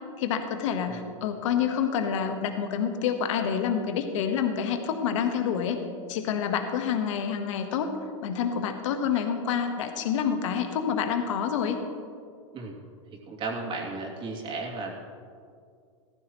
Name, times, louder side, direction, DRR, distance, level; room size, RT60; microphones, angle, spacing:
voice 1, 0.2-5.8 6.1-7.9 8.2-11.8, left 7 dB, 70° left, 6 dB, 1.3 m, -28 dB
voice 2, 13.3-14.9, right 3 dB, 30° right, -1 dB, 2.6 m, -34 dB
15.5 x 14.0 x 3.1 m, 2.2 s
hypercardioid pair, 115°, 17 cm